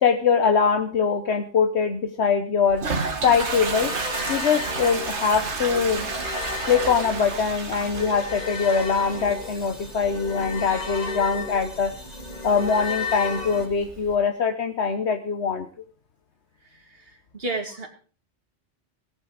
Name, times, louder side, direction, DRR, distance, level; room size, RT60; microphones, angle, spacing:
voice 1, 0.0-2.8 3.2-3.9 4.3-6.1 6.7-11.9 12.4-15.7, left 6 dB, 75° left, 6 dB, 1.3 m, -22 dB
Toilet flush, 2.7-14.1, right 4 dB, 90° right, 2.0 m, -33 dB
sound 1, 3.7-13.7, left 4 dB, 35° left, 1.9 m, -34 dB
voice 2, 16.7-17.9, right 2 dB, 60° right, 3 dB, 2.7 m, -33 dB
18.0 x 9.1 x 5.0 m, 0.40 s
omnidirectional pair, 1.1 m